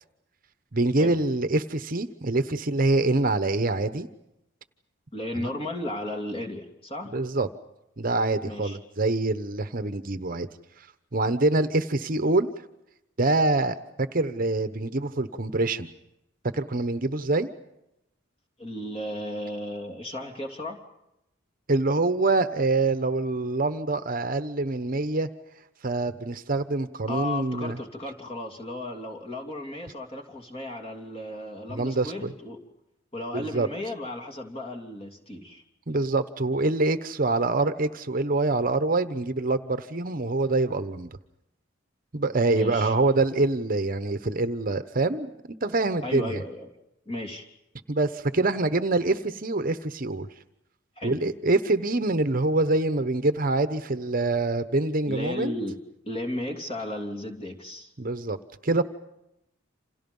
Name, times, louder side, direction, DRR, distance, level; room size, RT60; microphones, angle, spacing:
voice 1, 0.7-4.1 5.4-5.5 7.1-7.5 8.0-10.5 11.1-12.5 13.2-15.9 16.5-17.5 21.7-25.3 25.8-27.8 31.7-32.3 33.3-33.7 35.9-41.1 42.1-45.3 45.6-46.4 47.9-50.3 51.0-55.5 58.0-58.4 58.6-58.8, right 2 dB, 45° right, 11 dB, 1.0 m, -25 dB
voice 2, 5.1-7.2 8.4-8.8 18.6-20.8 27.1-32.6 33.1-35.6 42.5-42.9 46.0-46.8 47.0-47.5 51.0-51.2 55.1-55.8 56.0-57.9, left 1 dB, 30° left, 3 dB, 3.0 m, -35 dB
29.0 x 27.5 x 5.5 m, 0.87 s
head